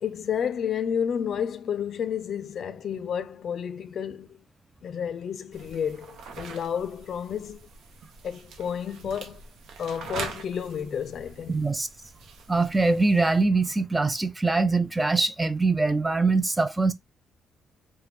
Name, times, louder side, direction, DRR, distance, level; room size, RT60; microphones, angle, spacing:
voice 1, 0.0-4.4 4.8-7.6 8.2-9.4 9.8-11.6, left 8 dB, 60° left, 0.4 m, -31 dB
sound 1, 5.5-13.4, right 4 dB, 75° right, 0.7 m, -43 dB
voice 2, 11.5-11.9 12.5-16.9, right 3 dB, 15° right, 0.4 m, -23 dB
3.4 x 2.1 x 3.1 m
cardioid pair, 90°, 0 cm